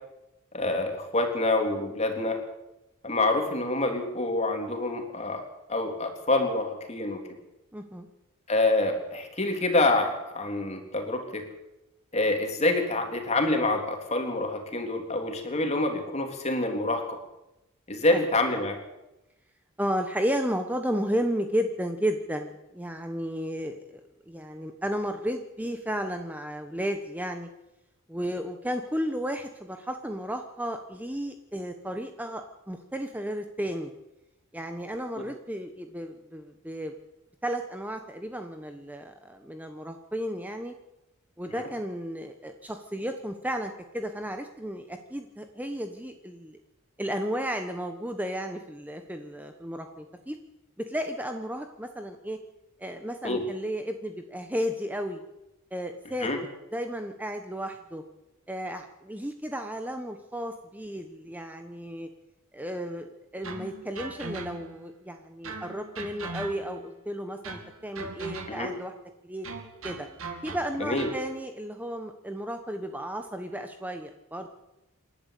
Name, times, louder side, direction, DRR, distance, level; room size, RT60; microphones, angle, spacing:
voice 1, 0.5-2.4 3.0-5.4 5.7-7.2 8.5-11.4 12.1-17.2 17.9-18.8 41.5-41.6 53.2-53.4 56.2-56.4 68.5-68.7 70.8-71.1, left 2 dB, 30° left, 4 dB, 3.5 m, -27 dB
voice 2, 7.7-8.1 18.1-18.2 19.8-24.0 24.3-27.5 28.1-33.9 34.5-36.9 37.4-40.7 41.4-46.6 47.0-50.4 50.8-52.4 52.8-55.2 55.7-56.3 56.7-58.0 58.5-62.1 62.5-68.9 69.2-69.5 69.8-70.1 70.4-74.5, equal, 10° right, 6 dB, 1.1 m, -33 dB
sound 1, 63.4-64.8 65.4-66.9 67.4-68.8 69.4-71.3, right 3 dB, 80° right, 2.6 m, -40 dB
27.5 x 12.0 x 8.4 m, 0.95 s
head